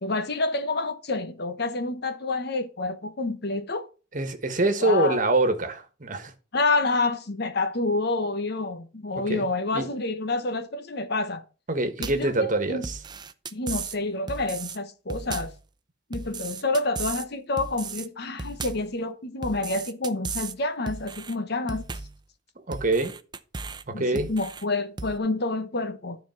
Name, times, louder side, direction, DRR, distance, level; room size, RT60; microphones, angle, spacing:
voice 1, 0.0-3.8 4.8-5.2 6.5-11.4 12.0-12.8 13.5-15.5 16.1-21.8 23.9-26.2, left 3 dB, 60° left, 1.1 m, -28 dB
voice 2, 4.1-6.3 9.3-9.5 9.7-9.9 11.7-13.0 22.7-23.2 23.9-24.3, right 2 dB, 45° right, 1.4 m, -25 dB
sound 1, 12.0-12.3 12.8-14.0 14.3-14.8 15.1-15.6 16.1-17.3 17.6-18.1 18.4-18.9 19.4-20.6 20.9-21.3 21.7-22.2 22.7-23.8 24.2-24.6 25.0-25.2, right 4 dB, 25° right, 0.6 m, -36 dB
12.5 x 4.2 x 5.8 m
head